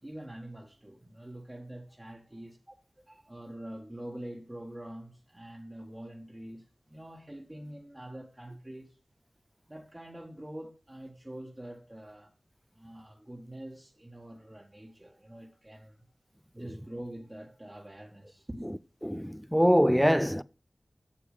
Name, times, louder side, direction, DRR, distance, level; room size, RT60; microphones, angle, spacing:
voice 1, 0.0-9.0 9.7-12.3 12.7-16.0 16.5-18.8, right 1 dB, 20° right, 1.5 m, -45 dB
voice 2, 19.0-20.4, equal, ahead, 0.4 m, -23 dB
8.5 x 7.0 x 5.1 m
wide cardioid pair, 55°, 0 cm